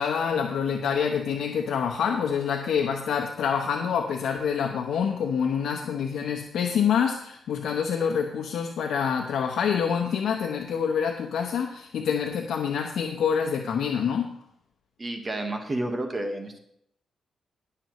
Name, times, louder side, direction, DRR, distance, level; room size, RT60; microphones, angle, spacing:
voice 1, 0.0-14.3, left 7 dB, 80° left, 2 dB, 0.9 m, -26 dB
voice 2, 15.0-16.6, right 1 dB, 25° right, 4 dB, 1.4 m, -30 dB
20.0 x 6.9 x 3.1 m, 0.72 s
cardioid pair, 115°, 0 cm